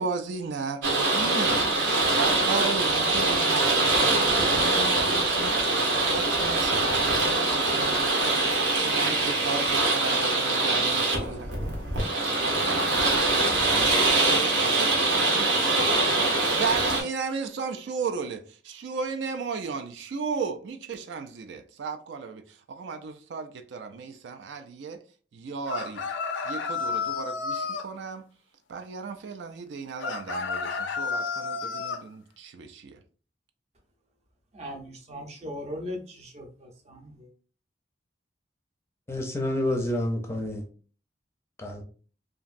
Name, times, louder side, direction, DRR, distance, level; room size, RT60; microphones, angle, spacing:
voice 1, 0.0-11.5 12.6-25.0 25.3-26.0 26.4-28.2 28.7-33.0, right 5 dB, 70° right, 0.4 m, -35 dB
sound 1, 0.8-17.0, right 2 dB, 90° right, 0.9 m, -23 dB
sound 2, 25.7-27.9 30.0-32.0, left 5 dB, 80° left, 0.4 m, -31 dB
voice 2, 34.5-37.3, left 1 dB, 35° right, 0.7 m, -39 dB
voice 3, 39.1-40.6 41.6-41.8, left 1 dB, 15° left, 0.5 m, -28 dB
2.9 x 2.5 x 2.5 m
head